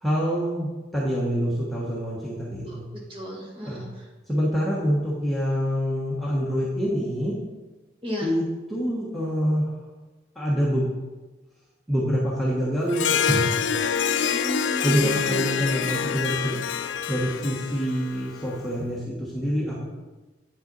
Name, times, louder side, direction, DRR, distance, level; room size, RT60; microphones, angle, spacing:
voice 1, 0.0-2.8 3.7-3.8 4.3-7.4 8.2-8.4 8.7-9.7 10.3-10.9 11.9-13.9 14.8-16.6 17.1-19.8, equal, ahead, -7 dB, 1.1 m, -26 dB
voice 2, 2.6-4.1 8.0-8.3 14.2-15.8, equal, 30° right, -3 dB, 1.7 m, -35 dB
Harp, 12.9-18.6, left 7 dB, 80° left, 0.4 m, -26 dB
8.5 x 5.8 x 4.0 m, 1.2 s
head